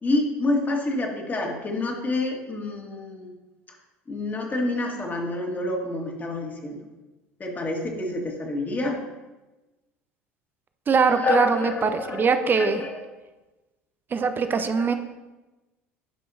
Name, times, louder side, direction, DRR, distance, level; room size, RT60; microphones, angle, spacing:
voice 1, 0.0-3.3 3.7-3.8 4.1-6.8 7.4-9.0 11.2-13.0 14.4-14.9, left 2 dB, 25° left, 0 dB, 1.9 m, -28 dB
voice 2, 10.9-12.8 14.1-15.0, right 5 dB, 30° right, 9 dB, 0.7 m, -22 dB
11.5 x 5.4 x 2.8 m, 1.1 s
figure-of-eight pair, 65°, 7 cm